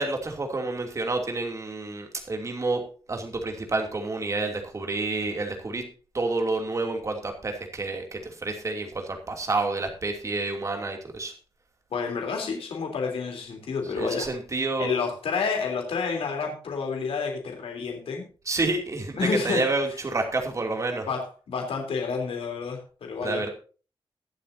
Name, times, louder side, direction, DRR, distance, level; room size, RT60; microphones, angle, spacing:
voice 1, 0.0-2.8 3.1-5.8 6.1-11.3 14.0-14.9 18.5-21.1 23.2-23.5, right 3 dB, 35° right, 3 dB, 2.8 m, -29 dB
voice 2, 11.9-14.3 14.8-18.3 19.2-19.7 21.1-23.4, left 5 dB, 85° left, 2 dB, 3.5 m, -29 dB
22.0 x 7.7 x 2.8 m, 0.37 s
wide cardioid pair, 140°, 9 cm